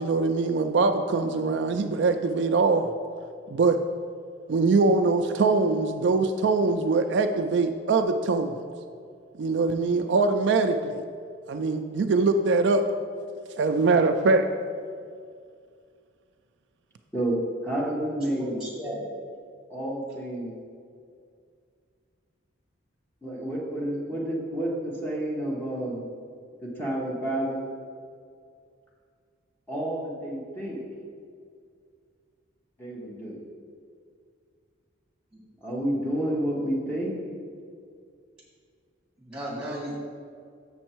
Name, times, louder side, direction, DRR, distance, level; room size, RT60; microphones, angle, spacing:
voice 1, 0.0-2.9 3.5-3.8 4.5-8.6 9.4-11.0 11.5-12.8 13.6-14.5, right 3 dB, 60° right, 7 dB, 0.3 m, -23 dB
voice 2, 17.6-18.5 19.7-20.5 23.2-26.0 26.8-27.6 29.7-30.8 32.8-33.4 35.6-37.1, right 1 dB, 10° left, -4 dB, 1.2 m, -30 dB
voice 3, 18.4-19.1 35.3-35.4 39.2-40.0, right 1 dB, 5° right, -6 dB, 1.8 m, -34 dB
6.9 x 6.3 x 4.5 m, 2.2 s
head